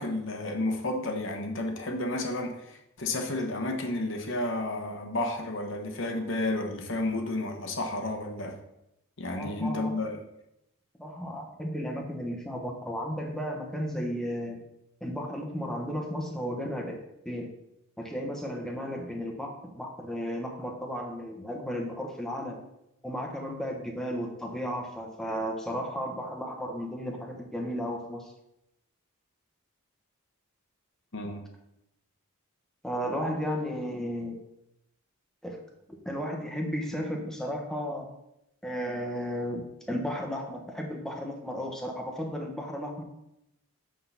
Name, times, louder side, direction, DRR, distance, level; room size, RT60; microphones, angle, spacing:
voice 1, 0.0-8.6 9.2-10.2 31.1-31.4, left 2 dB, 55° left, 3 dB, 1.1 m, -31 dB
voice 2, 9.3-10.0 11.0-14.6 15.0-17.0 17.2-17.5 18.0-22.6 23.0-28.3 32.8-34.4 35.4-35.6 36.0-38.1 38.6-43.0, equal, ahead, 1 dB, 1.0 m, -34 dB
8.0 x 3.8 x 5.6 m, 0.84 s
head